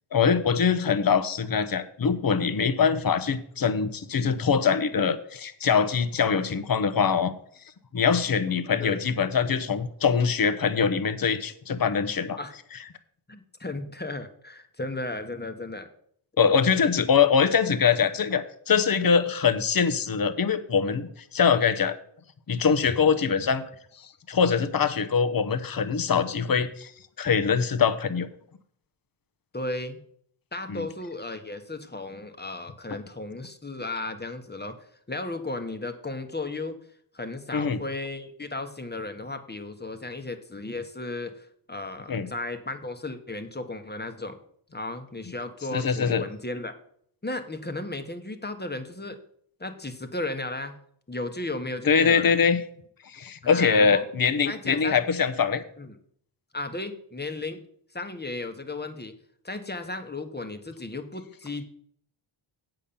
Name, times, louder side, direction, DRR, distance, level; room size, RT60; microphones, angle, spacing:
voice 1, 0.1-7.3 7.9-12.4 16.4-22.0 22.5-23.6 24.0-26.9 27.2-28.3 30.7-30.9 37.5-37.8 42.1-42.3 45.7-46.2 51.9-52.6 53.1-55.6, left 6 dB, 45° left, 10 dB, 0.9 m, -23 dB
voice 2, 13.3-15.9 29.5-30.0 30.5-34.8 35.1-36.8 37.1-44.4 44.7-46.7 47.2-49.2 49.6-50.8 51.1-52.3 53.4-54.0 54.5-55.0 55.8-56.0 56.5-57.6 57.9-59.1 59.4-61.6, left 2 dB, 20° left, 7 dB, 1.2 m, -35 dB
8.3 x 5.8 x 7.0 m, 0.63 s
wide cardioid pair, 80°, 49 cm